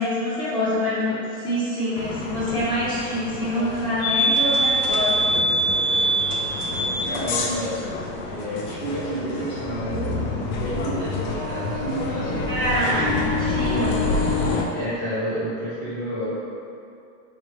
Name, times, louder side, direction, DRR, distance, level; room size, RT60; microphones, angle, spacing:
voice 1, 0.0-5.3 12.5-13.2 13.5-14.0, left 1 dB, 10° left, -11 dB, 0.6 m, -25 dB
sound 1, 1.9-14.6, left 1 dB, 80° left, 0.6 m, -25 dB
voice 2, 7.0-7.8 8.3-12.5 12.9-13.2 13.8-14.1 14.7-16.4, equal, 20° right, -17 dB, 1.0 m, -30 dB
4.3 x 2.4 x 3.1 m, 2.6 s
supercardioid pair, 175°, 38 cm